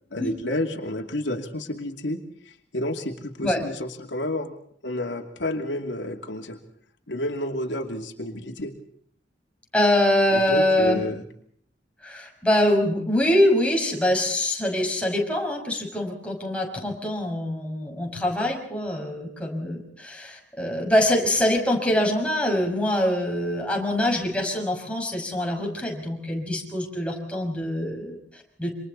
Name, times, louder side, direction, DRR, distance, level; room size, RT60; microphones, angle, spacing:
voice 1, 0.1-2.2 2.7-4.5 4.8-6.6 7.1-8.8 10.3-11.2, left 1 dB, 85° left, 3 dB, 2.8 m, -30 dB
voice 2, 9.7-11.0 12.0-28.7, left 1 dB, 5° left, 0 dB, 6.1 m, -24 dB
28.5 x 26.0 x 4.1 m, 0.65 s
head